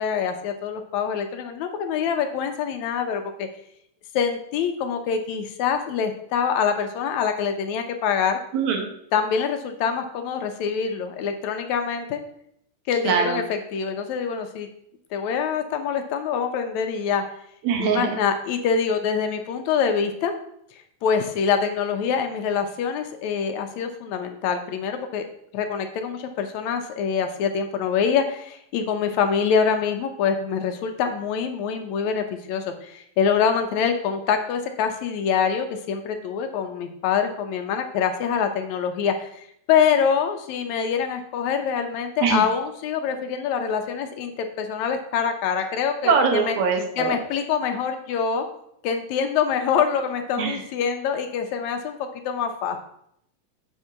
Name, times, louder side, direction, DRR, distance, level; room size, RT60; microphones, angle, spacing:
voice 1, 0.0-3.5 4.1-8.4 9.1-12.2 12.9-14.7 15.1-17.2 17.8-20.3 21.0-25.2 25.5-46.6 47.0-48.4 48.8-52.0 52.3-52.8, left 7 dB, 80° left, 6 dB, 2.1 m, -25 dB
voice 2, 8.5-8.9 13.0-13.4 17.6-18.1 42.2-42.4 46.0-47.2 50.4-50.6, right 6 dB, 75° right, 3 dB, 2.5 m, -22 dB
7.9 x 3.6 x 5.7 m, 0.71 s
omnidirectional pair, 3.3 m